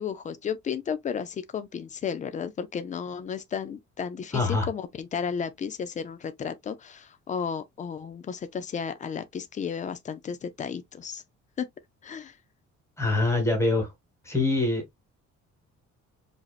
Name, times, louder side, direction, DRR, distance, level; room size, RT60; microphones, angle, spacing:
voice 1, 0.0-11.2 11.6-11.7 12.0-12.4, left 7 dB, 25° left, 0.4 m, -33 dB
voice 2, 4.3-4.7 13.0-13.9 14.2-15.0, left 2 dB, 10° left, 1.4 m, -24 dB
4.9 x 2.8 x 2.4 m
cardioid pair, 175°, 29 cm